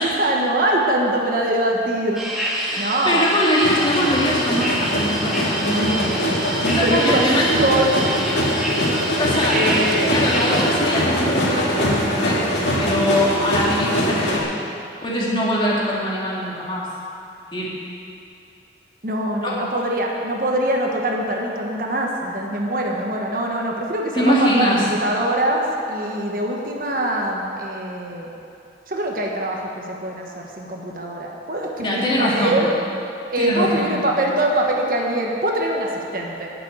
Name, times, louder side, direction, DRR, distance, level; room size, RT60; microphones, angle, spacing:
voice 1, 0.0-2.2 2.8-3.3 5.7-5.9 6.8-7.3 7.6-8.0 9.5-10.1 19.0-28.3 28.9-30.2 30.6-32.7 33.3-36.5, right 1 dB, 50° right, 0 dB, 1.3 m, -23 dB
sound 1, 2.2-10.7, right 1 dB, ahead, 1.6 m, -28 dB
voice 2, 2.5-6.2 6.6-7.5 8.1-8.2 9.1-9.6 10.1-14.5 15.0-16.9 17.5-17.7 19.4-19.6 24.1-24.9 31.8-32.6 33.4-34.0, equal, 30° left, -5 dB, 2.2 m, -22 dB
sound 2, 3.6-14.4, equal, 90° left, 2.2 m, -22 dB
11.5 x 6.9 x 9.0 m, 2.6 s
head